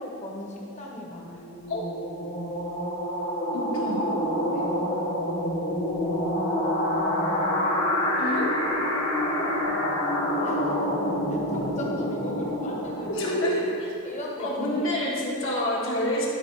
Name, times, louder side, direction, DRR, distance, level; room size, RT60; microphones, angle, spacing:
voice 1, 0.0-1.5 4.5-4.7 10.4-10.7 11.3-13.5 14.0-14.9, left 1 dB, 30° left, -1 dB, 1.1 m, -38 dB
sound 1, 1.0-13.7, left 1 dB, 80° left, 2.2 m, -27 dB
voice 2, 3.5-4.1 8.2-8.5 13.1-13.9 14.4-16.3, left 1 dB, 60° left, -5 dB, 1.7 m, -27 dB
11.5 x 4.3 x 4.7 m, 2.6 s
head